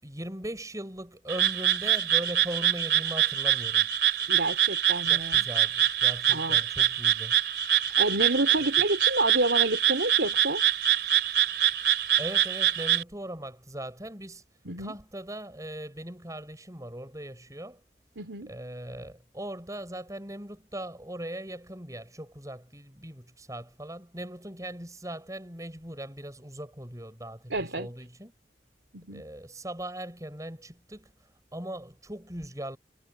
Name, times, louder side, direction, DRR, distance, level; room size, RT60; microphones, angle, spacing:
voice 1, 0.0-3.9 5.0-7.4 8.5-8.6 12.2-14.4 14.8-17.8 18.5-28.3 29.1-31.1 31.5-32.8, right 1 dB, 20° right, 6.9 m, -39 dB
Frog, 1.3-13.0, right 11 dB, 65° right, 3.4 m, -25 dB
voice 2, 4.3-5.4 6.3-6.6 8.0-10.6 14.7-14.9 18.2-18.5 27.5-27.9 28.9-29.3, right 2 dB, 85° right, 3.4 m, -29 dB
head